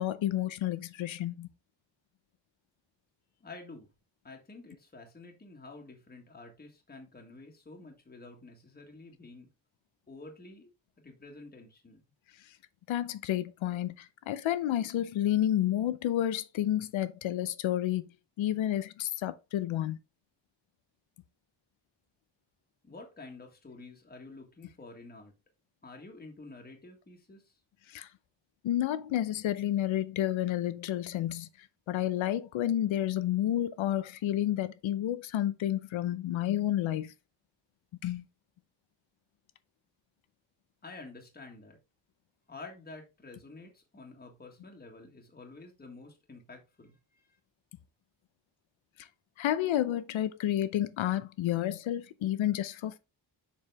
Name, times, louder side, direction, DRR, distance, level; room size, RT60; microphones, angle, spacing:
voice 1, 0.0-1.5 12.9-13.9 14.3-18.1 18.4-20.0 27.9-28.1 28.6-31.5 31.9-37.1 38.0-38.2 49.4-53.0, left 12 dB, 90° left, 0.7 m, -30 dB
voice 2, 3.4-3.9 4.2-9.5 10.1-10.7 11.0-12.0 22.8-25.3 25.8-27.6 40.8-41.8 42.5-47.4, left 3 dB, 20° left, 1.6 m, -49 dB
7.1 x 4.9 x 3.4 m
wide cardioid pair, 145°, 45 cm